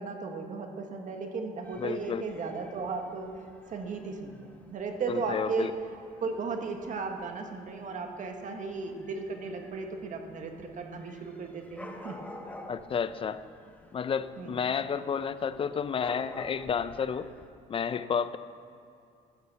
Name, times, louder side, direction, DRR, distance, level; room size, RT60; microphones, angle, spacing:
voice 1, 0.0-3.3 3.7-5.7 6.2-12.1 14.4-14.6, right 4 dB, 50° right, 4 dB, 1.6 m, -35 dB
Dog / Cat, 1.6-17.5, left 1 dB, 10° left, 1.1 m, -51 dB
voice 2, 1.8-2.2 5.1-5.7 12.7-13.4 13.9-17.3 17.7-18.4, left 6 dB, 30° left, 14 dB, 0.5 m, -31 dB
14.0 x 6.9 x 7.0 m, 2.5 s
cardioid pair, 110°, 17 cm